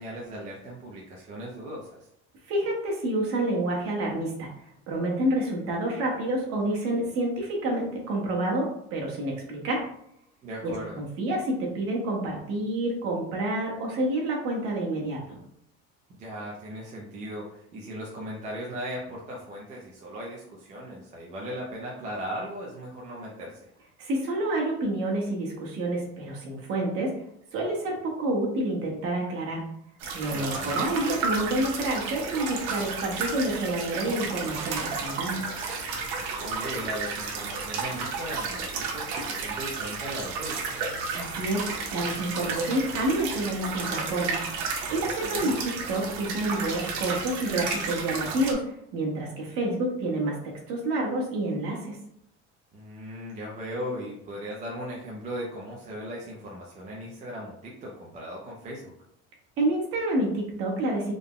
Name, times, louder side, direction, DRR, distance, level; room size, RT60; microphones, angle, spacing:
voice 1, 0.0-2.1 10.4-11.0 16.1-23.7 30.3-30.7 36.4-40.7 45.0-45.5 52.7-58.9, equal, 25° right, -3 dB, 0.4 m, -37 dB
voice 2, 2.5-4.5 4.9-9.8 10.6-15.4 24.0-27.1 27.5-29.6 30.1-35.4 41.1-45.6 45.9-50.4 50.7-52.0 59.6-61.1, right 1 dB, 50° right, -2 dB, 1.1 m, -28 dB
sound 1, 30.0-48.5, right 4 dB, 85° right, 0.9 m, -32 dB
3.6 x 2.1 x 3.7 m, 0.73 s
cardioid pair, 175°, 30 cm